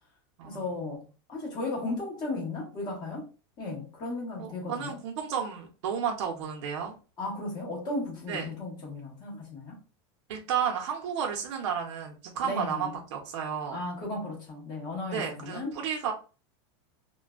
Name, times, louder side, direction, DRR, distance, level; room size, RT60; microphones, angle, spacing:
voice 1, 0.4-1.0 1.3-3.3 3.6-5.0 7.2-9.8 12.4-12.9 13.7-15.7, left 2 dB, 30° left, 1.1 m, -35 dB
voice 2, 4.4-6.9 8.3-8.5 10.3-13.8 15.1-16.1, right 7 dB, 80° right, 0.6 m, -32 dB
2.5 x 2.2 x 2.3 m
supercardioid pair, 160°, 15 cm